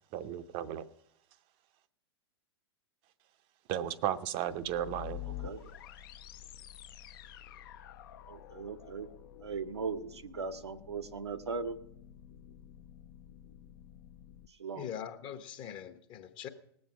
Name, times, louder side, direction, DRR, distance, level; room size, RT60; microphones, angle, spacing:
voice 1, 0.1-0.9 3.7-5.2, right 11 dB, 40° right, 12 dB, 0.7 m, -34 dB
sound 1, 4.5-14.5, left 11 dB, 55° left, 0.7 m, -49 dB
voice 2, 8.3-9.1 9.4-11.8 14.6-14.9, right 5 dB, 80° right, 7 dB, 0.9 m, -38 dB
voice 3, 14.7-16.5, left 9 dB, 35° left, 9 dB, 1.1 m, -42 dB
19.0 x 7.6 x 6.0 m, 0.71 s
figure-of-eight pair, 100°, 14 cm